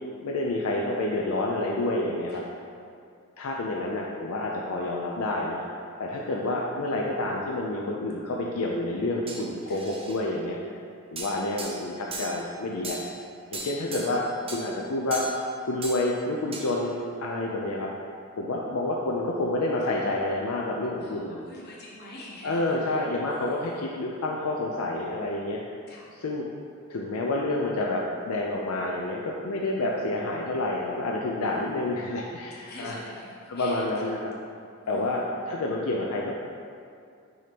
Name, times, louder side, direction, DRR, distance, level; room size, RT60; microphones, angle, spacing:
voice 1, 0.2-2.4 3.4-5.6 6.0-10.6 11.1-13.0 13.5-15.2 15.6-17.9 18.4-21.4 22.4-25.6 26.1-26.5 26.9-33.0 33.5-34.3 34.9-36.3, left 2 dB, 75° left, -2 dB, 0.5 m, -29 dB
voice 2, 6.1-6.5 9.7-9.9 21.0-23.0 23.3-23.7 25.9-26.2 29.5-29.8 32.5-33.9 34.8-35.3, left 1 dB, 45° left, -5 dB, 1.1 m, -46 dB
sound 1, 9.3-10.2 11.2-12.4 12.8-13.1 13.5-14.2 14.5-14.6 15.1-15.5 15.8-16.0 16.5-16.7, right 2 dB, 25° right, 0.6 m, -37 dB
6.3 x 2.9 x 5.1 m, 2.4 s
head